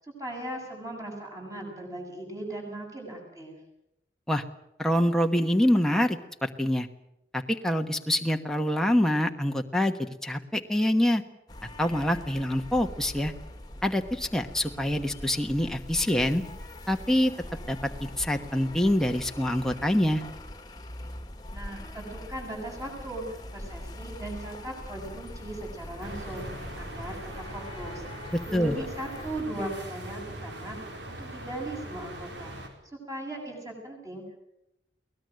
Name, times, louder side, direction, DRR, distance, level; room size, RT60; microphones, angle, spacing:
voice 1, 0.0-3.5 21.5-23.2 23.5-26.4 26.8-32.6 33.1-34.2, right 1 dB, 20° right, 0 dB, 7.8 m, -38 dB
voice 2, 4.8-6.9 7.3-9.9 10.2-11.2 11.8-13.3 13.8-16.4 16.9-17.3 17.7-17.8 18.2-20.2 28.3-28.8, left 1 dB, 5° left, 3 dB, 1.2 m, -25 dB
sound 1, 11.5-29.4, left 1 dB, 20° left, 1.9 m, -43 dB
sound 2, 26.0-32.7, right 1 dB, 90° right, 4.6 m, -41 dB
23.0 x 18.5 x 7.8 m, 0.83 s
head